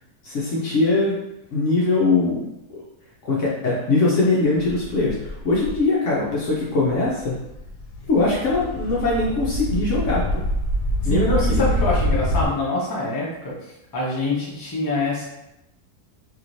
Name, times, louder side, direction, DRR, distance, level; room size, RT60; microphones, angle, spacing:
voice 1, 0.2-1.2 1.5-2.5 2.7-2.8 3.2-7.4 8.1-10.4 11.0-11.6, left 3 dB, 65° left, -5 dB, 0.8 m, -21 dB
sound 1, 4.6-5.8 6.5-6.6 6.9-12.5, left 1 dB, 85° left, 1.1 m, -25 dB
voice 2, 11.0-13.2 13.9-15.2, left 1 dB, 25° left, -6 dB, 0.4 m, -24 dB
2.9 x 2.8 x 2.6 m, 0.89 s
omnidirectional pair, 1.7 m